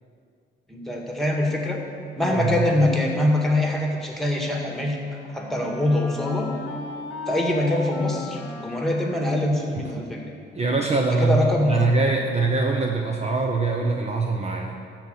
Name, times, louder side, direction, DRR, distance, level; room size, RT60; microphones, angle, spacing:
voice 1, 0.7-1.8 2.2-5.0 5.3-6.5 7.3-10.3 11.2-11.9, left 1 dB, ahead, 0 dB, 1.9 m, -23 dB
voice 2, 2.3-2.7 9.8-9.9 10.5-14.7, right 3 dB, 35° right, 1 dB, 0.9 m, -23 dB
Wind instrument woodwind instrument, 4.4-10.2, left 4 dB, 85° left, 1.0 m, -38 dB
13.0 x 4.4 x 7.9 m, 2.4 s
cardioid pair, 90°, 20 cm